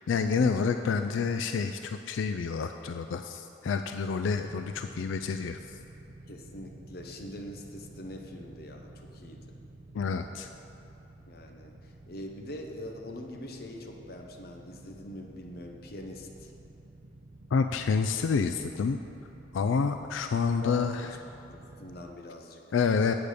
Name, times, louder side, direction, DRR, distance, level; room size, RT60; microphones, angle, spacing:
voice 1, 0.1-5.8 9.9-10.5 17.5-19.0 19.5-21.1 22.7-23.1, left 5 dB, 85° left, 7 dB, 0.4 m, -28 dB
sound 1, 4.3-22.1, right 2 dB, 65° right, 0.8 m, -51 dB
voice 2, 6.3-9.4 11.3-16.5 20.6-21.1 21.5-22.6, left 1 dB, 50° left, 2 dB, 0.8 m, -43 dB
8.9 x 8.2 x 5.0 m, 2.9 s
head